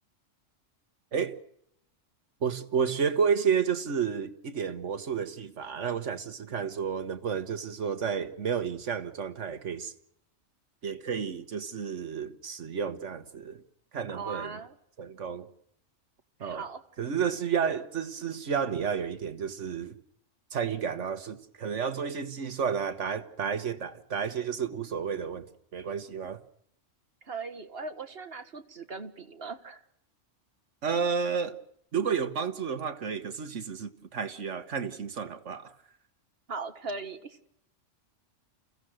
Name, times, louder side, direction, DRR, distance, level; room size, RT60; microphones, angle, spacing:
voice 1, 2.4-9.9 10.8-13.6 13.9-14.6 15.0-15.5 16.4-16.6 17.0-20.0 20.5-25.5 25.7-26.4 30.8-31.6 31.9-35.7, right 6 dB, 70° right, 1.7 m, -31 dB
voice 2, 14.1-14.7 16.4-16.8 27.2-29.8 36.5-37.4, right 4 dB, 50° right, 1.7 m, -39 dB
28.5 x 16.0 x 6.4 m
omnidirectional pair, 1.3 m